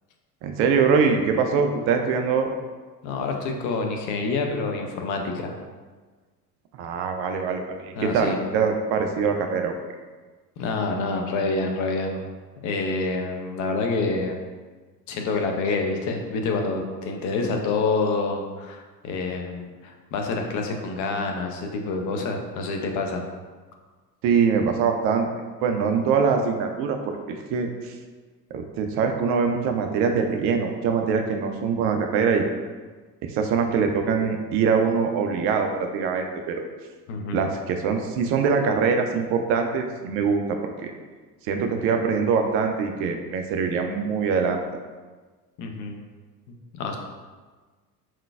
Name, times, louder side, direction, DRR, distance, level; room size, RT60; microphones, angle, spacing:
voice 1, 0.4-2.5 6.8-9.7 24.2-25.3 25.6-27.0 27.3-27.9 28.5-32.4 33.2-36.5 37.3-40.4 40.8-40.9 41.5-44.6, right 5 dB, 30° right, 4 dB, 0.3 m, -23 dB
voice 2, 3.0-5.5 8.0-8.4 10.6-12.3 12.6-14.4 15.1-23.2 37.1-37.5 45.6-46.0 46.7-47.0, left 3 dB, 40° left, 3 dB, 0.6 m, -27 dB
4.5 x 3.7 x 2.3 m, 1.4 s
figure-of-eight pair, 65°, 49 cm